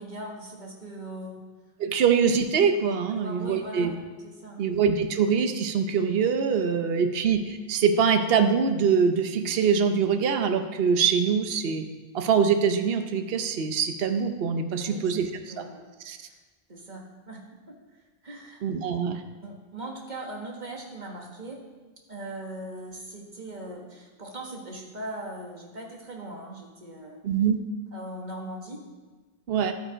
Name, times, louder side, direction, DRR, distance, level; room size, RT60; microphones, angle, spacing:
voice 1, 0.0-1.4 3.2-3.9 4.2-4.6 14.8-15.1 15.5-15.8 16.3-16.4 16.7-17.4 17.7-18.6 19.4-21.6 22.1-27.2 27.9-28.8, right 1 dB, 45° right, 0 dB, 1.8 m, -40 dB
voice 2, 1.8-4.0 4.6-11.9 12.1-15.3 15.6-15.7 16.0-16.2 18.6-19.2 27.2-27.6 29.5-29.7, right 6 dB, 70° right, 7 dB, 1.0 m, -24 dB
11.5 x 9.0 x 5.0 m, 1.3 s
omnidirectional pair, 1.1 m